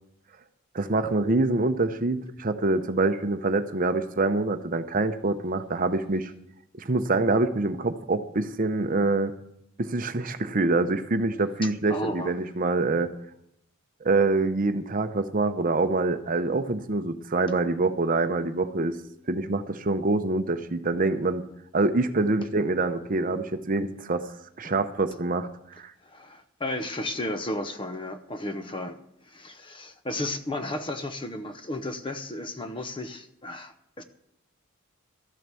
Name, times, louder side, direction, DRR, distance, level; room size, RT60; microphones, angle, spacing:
voice 1, 0.7-6.3 6.7-9.3 9.8-13.1 14.0-19.0 19.3-21.4 21.7-24.3 24.6-25.9, right 3 dB, 40° right, 0.7 m, -25 dB
voice 2, 11.9-12.4 24.6-24.7 26.0-29.0 29.3-34.0, left 1 dB, 25° left, 0.7 m, -33 dB
13.5 x 7.7 x 6.9 m
head